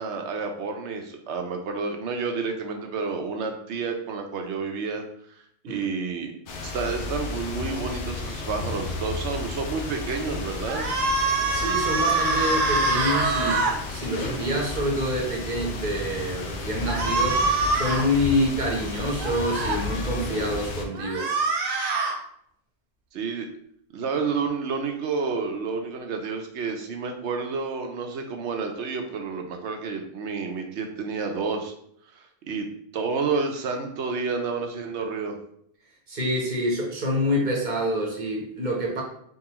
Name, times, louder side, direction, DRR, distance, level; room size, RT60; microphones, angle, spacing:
voice 1, 0.0-5.0 5.6-6.3 6.6-10.9 23.1-23.5 23.9-31.7 32.1-35.4, right 4 dB, 70° right, 4 dB, 0.9 m, -30 dB
sound 1, 6.5-20.8, left 3 dB, 70° left, 1.0 m, -33 dB
sound 2, 10.7-13.7 16.9-18.1 19.2-19.8 20.9-22.2, right 3 dB, 90° right, 1.1 m, -24 dB
voice 2, 11.5-17.4 17.7-21.3 36.1-39.0, equal, 40° right, -1 dB, 1.0 m, -27 dB
3.9 x 3.6 x 2.9 m, 0.67 s
omnidirectional pair, 1.3 m